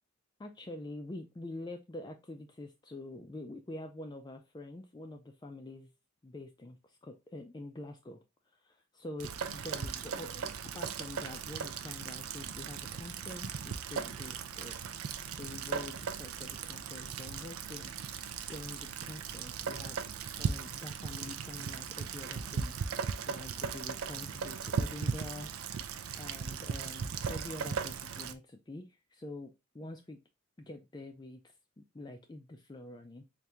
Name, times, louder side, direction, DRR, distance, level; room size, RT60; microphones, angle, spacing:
voice 1, 0.4-5.9 6.2-8.2 8.6-14.8 15.3-17.9 18.5-20.0 20.4-25.5 26.2-30.2 30.6-33.2, left 2 dB, 20° left, 0.3 m, -46 dB
Rain, 9.2-28.4, right 6 dB, 85° right, 0.5 m, -38 dB
4.3 x 2.6 x 3.4 m
head